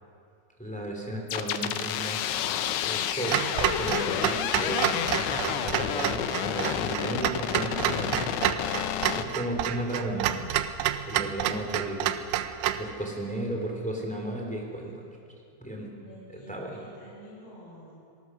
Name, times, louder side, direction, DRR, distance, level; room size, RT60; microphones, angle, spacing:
voice 1, 0.6-2.4 2.8-8.4 9.1-10.4 11.1-12.1 12.8-14.9 15.6-15.9 16.5-16.7, right 1 dB, ahead, 0 dB, 2.5 m, -34 dB
sound 1, 1.3-9.2, left 10 dB, 80° left, 3.0 m, -30 dB
Clock, 3.3-12.9, right 12 dB, 80° right, 3.0 m, -29 dB
voice 2, 15.9-17.9, equal, 35° left, -6 dB, 8.1 m, -49 dB
26.0 x 18.5 x 6.3 m, 2.5 s
omnidirectional pair, 5.2 m